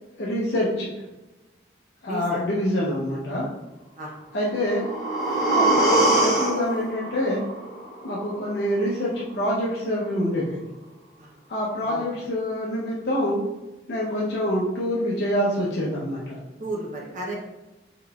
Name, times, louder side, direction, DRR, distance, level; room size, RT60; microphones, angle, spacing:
voice 1, 0.2-0.9 2.0-3.5 4.3-4.9 5.5-7.4 8.0-10.6 11.5-13.4 13.9-16.4, left 1 dB, 70° left, -6 dB, 0.7 m, -26 dB
voice 2, 2.1-2.4 4.0-4.1 11.2-11.3 11.8-12.1 16.6-17.3, right 1 dB, 45° right, -2 dB, 0.6 m, -33 dB
sound 1, 4.5-8.5 8.8-8.9, right 2 dB, ahead, 1.4 m, -23 dB
3.8 x 3.7 x 2.3 m, 1.1 s
head